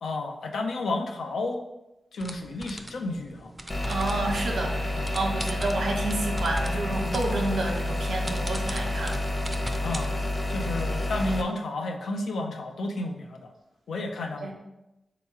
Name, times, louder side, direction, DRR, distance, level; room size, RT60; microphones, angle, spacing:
voice 1, 0.0-1.6 2.1-3.5 5.0-5.2 9.8-13.5 13.9-14.5, left 2 dB, 80° left, 3 dB, 0.5 m, -32 dB
sound 1, 2.2-10.1, right 1 dB, 15° right, 0.5 m, -41 dB
sound 2, 3.7-11.4, left 1 dB, 35° left, 0.8 m, -29 dB
voice 2, 3.8-9.3 14.4-14.5, right 2 dB, 80° right, 0 dB, 0.8 m, -30 dB
3.6 x 2.9 x 4.6 m, 0.95 s
cardioid pair, 45°, 0 cm